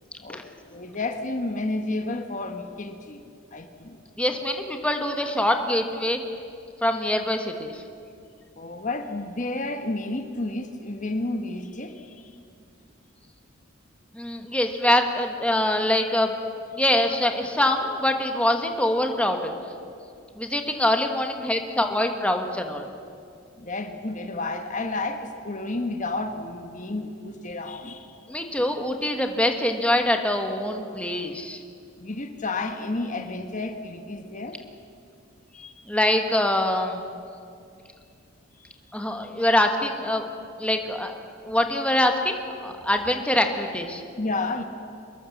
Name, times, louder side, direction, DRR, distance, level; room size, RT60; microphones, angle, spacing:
voice 1, 0.7-3.2 3.5-4.0 8.6-12.3 23.6-28.2 32.0-34.6 35.5-35.7 38.6-38.7 39.1-39.3 44.2-44.6, left 2 dB, 40° left, 6 dB, 1.3 m, -31 dB
voice 2, 4.2-6.2 6.8-7.8 14.1-16.3 16.7-19.5 20.4-22.9 28.3-31.6 35.9-37.1 38.9-40.3 40.6-41.1 41.4-44.0, left 1 dB, 5° left, 4 dB, 1.6 m, -24 dB
24.5 x 21.0 x 7.4 m, 2.4 s
head